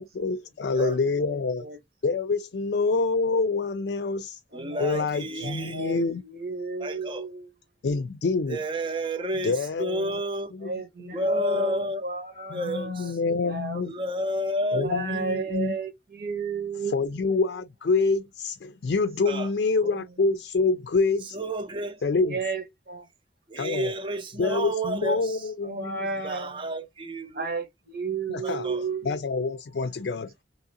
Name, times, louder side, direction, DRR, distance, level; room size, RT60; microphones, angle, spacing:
voice 1, 0.0-1.7 2.0-4.4 4.8-6.2 7.8-8.6 9.3-10.2 10.5-10.7 11.0-11.1 12.5-13.9 14.7-15.8 16.9-21.4 22.0-22.4 23.6-23.9 24.4-26.0 28.3-28.7 29.0-30.4, left 4 dB, 70° left, 0.4 m, -26 dB
voice 2, 1.3-1.8 4.5-7.5 10.6-13.1 13.4-13.8 14.7-17.1 19.8-20.0 22.3-23.0 25.6-26.7 27.3-29.1, right 4 dB, 55° right, 1.1 m, -33 dB
voice 3, 4.5-6.0 6.8-7.2 8.5-9.5 9.8-10.5 11.1-12.0 12.5-12.9 13.9-15.4 19.3-19.5 21.3-21.9 23.5-25.2 26.2-27.5 28.4-28.8, equal, 30° right, 0.6 m, -30 dB
3.6 x 2.9 x 2.8 m
head